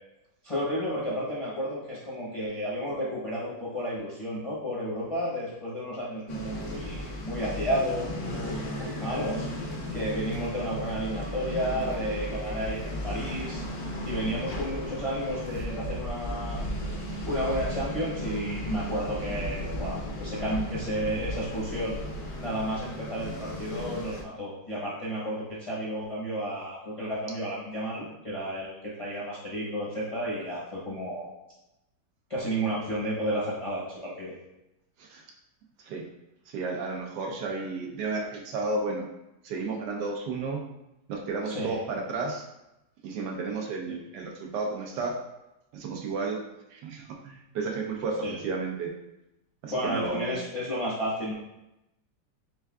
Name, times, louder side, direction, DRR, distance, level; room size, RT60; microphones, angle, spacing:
voice 1, 0.4-9.5 9.9-13.6 14.0-16.6 17.2-22.0 22.4-31.3 32.3-34.3 41.4-41.8 43.9-44.0 48.2-48.4 49.7-51.3, equal, 30° left, -7 dB, 0.6 m, -32 dB
sound 1, 6.3-24.2, equal, 70° left, 1.1 m, -35 dB
voice 2, 36.5-39.1 39.4-40.6 41.1-42.4 43.0-45.2 45.7-46.4 46.7-48.9 49.6-50.4, right 3 dB, 90° right, 0 dB, 1.4 m, -32 dB
4.4 x 3.6 x 2.3 m, 0.90 s
omnidirectional pair, 1.8 m